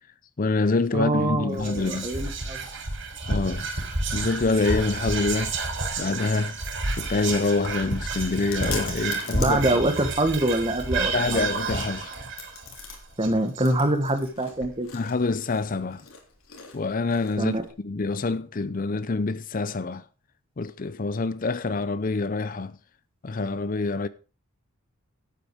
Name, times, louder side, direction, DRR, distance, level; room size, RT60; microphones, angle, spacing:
voice 1, 0.4-2.1 3.3-3.7 4.1-5.5 6.0-6.6 7.0-9.6 11.1-12.1 14.9-16.0 16.7-17.6 17.8-20.0 20.6-22.8 23.2-24.1, left 3 dB, 40° left, 0.5 m, -26 dB
voice 2, 0.9-2.6 9.3-11.5 13.2-14.9 17.4-17.6, right 1 dB, 25° right, 1.7 m, -25 dB
Whispering, 1.5-14.0, right 3 dB, 60° right, 3.9 m, -30 dB
Chewing mastication, 7.0-17.7, left 6 dB, 75° left, 3.4 m, -44 dB
12.0 x 9.1 x 5.0 m
head